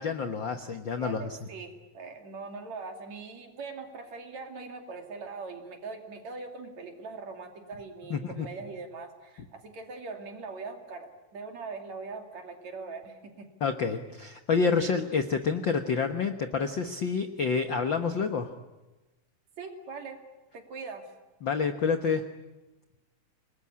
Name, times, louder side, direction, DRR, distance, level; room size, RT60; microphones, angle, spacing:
voice 1, 0.0-1.4 8.1-8.5 13.6-18.5 21.4-22.2, left 5 dB, 60° left, 7 dB, 1.2 m, -28 dB
voice 2, 1.0-13.5 14.8-14.9 19.6-20.2 20.5-21.1, right 4 dB, 55° right, 4 dB, 3.9 m, -41 dB
28.5 x 20.5 x 9.8 m, 1.1 s
omnidirectional pair, 3.9 m